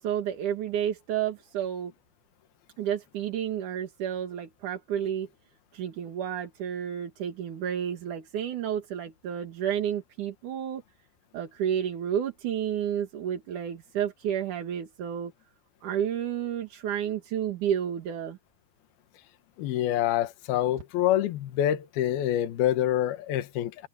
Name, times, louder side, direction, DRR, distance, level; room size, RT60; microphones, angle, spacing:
voice 1, 0.0-1.9 2.8-5.3 5.7-10.8 11.3-15.3 15.8-18.4, right 9 dB, 55° right, 2.9 m, -31 dB
voice 2, 19.6-23.9, left 12 dB, 70° left, 3.1 m, -26 dB
omnidirectional pair, 4.9 m